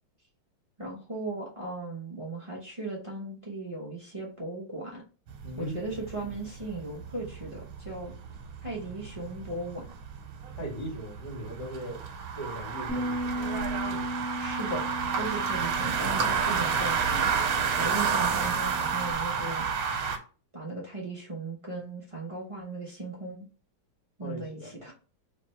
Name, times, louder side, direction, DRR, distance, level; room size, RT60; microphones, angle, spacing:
voice 1, 0.8-5.0 5.6-8.1 8.6-9.9 14.4-14.9 15.2-17.3 17.8-19.7 20.5-23.5 24.2-24.9, right 2 dB, 60° right, -4 dB, 0.3 m, -37 dB
sound 1, 5.3-20.2, right 6 dB, 85° right, 1.7 m, -30 dB
voice 2, 5.4-5.8 10.6-12.0 12.3-13.4 24.2-24.7, equal, 30° left, -4 dB, 1.9 m, -38 dB
Bass guitar, 12.9-19.1, equal, 5° left, 2.1 m, -37 dB
3.5 x 3.4 x 4.3 m, 0.37 s
omnidirectional pair, 2.3 m